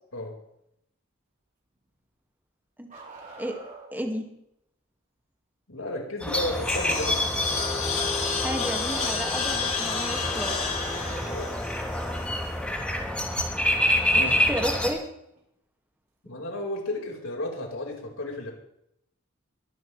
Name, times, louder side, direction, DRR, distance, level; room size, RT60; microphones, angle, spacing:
Bark, 2.9-4.0 7.5-8.6 10.2-11.7 13.3-13.4 15.4-15.5 16.6-16.7, right 2 dB, 40° right, 4.4 m, -45 dB
voice 1, 3.9-4.2 8.4-10.6 14.1-15.0, equal, 10° right, 2 dB, 2.0 m, -32 dB
voice 2, 5.7-7.2 11.3-11.5 14.1-14.4 16.2-18.5, left 1 dB, 85° left, 0 dB, 4.8 m, -33 dB
sound 1, 6.2-14.9, left 1 dB, 5° left, 3.0 m, -28 dB
sound 2, 6.3-12.6, left 5 dB, 40° left, 5.8 m, -30 dB
23.5 x 12.0 x 3.3 m, 0.77 s
head